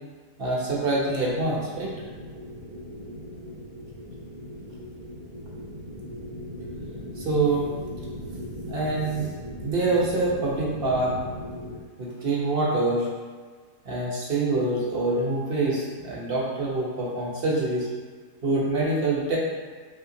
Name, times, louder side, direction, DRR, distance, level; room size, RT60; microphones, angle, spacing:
voice 1, 0.4-1.9 7.2-7.7 8.7-9.3 9.6-11.1 12.0-13.1 13.8-17.9 18.4-19.4, right 2 dB, 45° right, -5 dB, 0.8 m, -25 dB
sound 1, 0.6-11.8, equal, 65° right, 1.1 m, -38 dB
5.5 x 2.8 x 2.7 m, 1.5 s
omnidirectional pair, 1.7 m